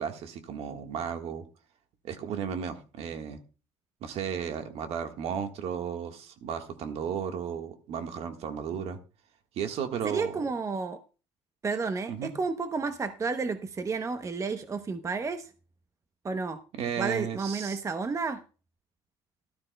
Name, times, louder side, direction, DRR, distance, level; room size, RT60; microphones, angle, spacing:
voice 1, 0.0-1.4 2.0-3.4 4.0-9.0 9.5-10.4 12.1-12.3 16.8-17.8, right 7 dB, 65° right, 1.5 m, -34 dB
voice 2, 10.0-11.0 11.6-15.5 16.2-16.6 17.0-18.4, right 4 dB, 25° right, 0.8 m, -31 dB
13.5 x 12.0 x 2.2 m
supercardioid pair, 85°, 11 cm